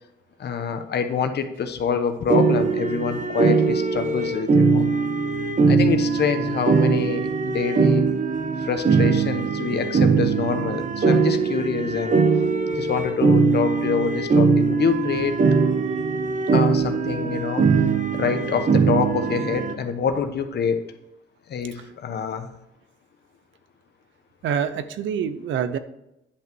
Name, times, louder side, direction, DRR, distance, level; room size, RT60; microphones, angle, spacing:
voice 1, 0.4-4.9 5.7-8.0 8.6-12.2 12.7-15.4 16.5-17.7 18.1-20.8 21.5-22.5, left 6 dB, 55° left, 8 dB, 1.1 m, -26 dB
sound 1, 2.3-19.7, right 4 dB, 40° right, 1.2 m, -21 dB
voice 2, 24.4-25.8, right 8 dB, 75° right, 11 dB, 0.7 m, -26 dB
10.0 x 5.8 x 4.6 m, 0.88 s
cardioid pair, 90°, 20 cm